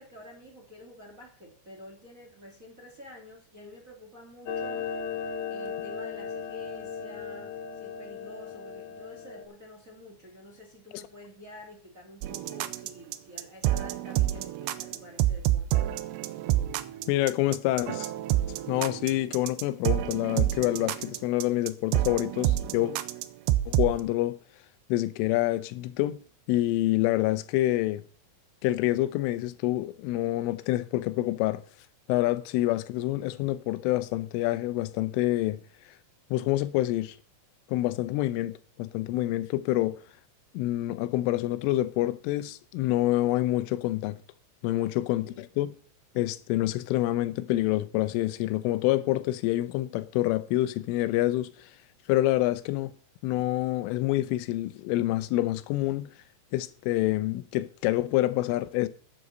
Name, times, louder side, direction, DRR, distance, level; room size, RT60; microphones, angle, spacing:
voice 1, 0.0-4.9 5.5-15.8 44.7-45.5, left 1 dB, 25° right, 2.1 m, -49 dB
Clock, 4.5-9.4, left 6 dB, 60° left, 1.9 m, -36 dB
sound 1, 12.2-24.0, right 14 dB, 80° right, 2.7 m, -28 dB
voice 2, 17.1-18.1 18.7-22.9 23.7-24.4 24.9-26.2 26.5-28.0 28.6-31.6 32.1-35.6 36.3-37.2 37.7-40.0 40.5-44.2 44.6-45.7 46.2-51.7 52.1-52.9 53.2-56.1 56.5-58.9, left 16 dB, 90° left, 3.3 m, -27 dB
11.0 x 8.4 x 6.5 m
omnidirectional pair, 5.6 m